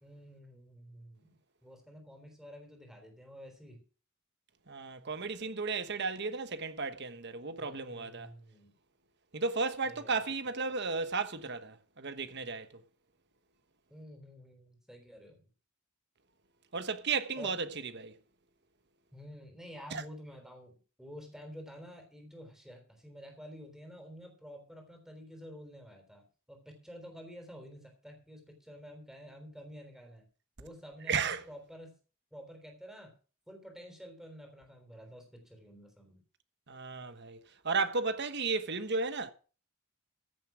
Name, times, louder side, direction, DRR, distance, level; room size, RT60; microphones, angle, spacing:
voice 1, 0.0-3.8 7.6-8.7 9.8-10.7 13.9-15.4 17.4-17.6 19.1-20.7 21.0-30.3 30.6-32.0 32.3-33.1 33.5-36.2, equal, ahead, 3.7 m, -50 dB
voice 2, 4.7-8.3 9.3-12.7 16.7-17.7 17.9-18.1 19.9-20.0 31.1-31.4 36.7-37.4 37.6-39.3, right 4 dB, 50° right, 1.2 m, -34 dB
15.0 x 7.2 x 6.2 m
head